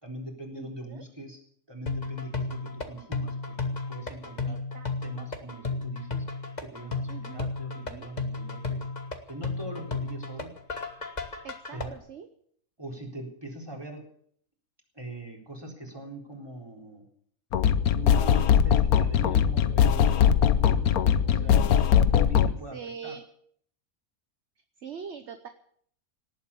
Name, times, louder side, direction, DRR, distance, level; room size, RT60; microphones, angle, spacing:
voice 1, 0.0-1.4 1.7-4.6 5.0-6.3 6.6-8.8 9.3-10.5 11.7-11.9 12.8-14.0 14.9-17.1 17.9-21.8 22.1-22.8 23.0-23.2, right 2 dB, 15° right, 1 dB, 4.0 m, -41 dB
voice 2, 0.6-1.0 4.5-4.9 7.1-7.5 7.8-8.1 11.4-12.3 21.3-21.6 22.7-23.2 24.8-25.5, right 7 dB, 50° right, 8 dB, 1.3 m, -43 dB
sound 1, 1.9-11.8, left 3 dB, 30° left, 1.6 m, -33 dB
sound 2, 17.5-22.5, left 8 dB, 75° left, 1.3 m, -21 dB
18.5 x 8.7 x 8.5 m, 0.63 s
omnidirectional pair, 1.6 m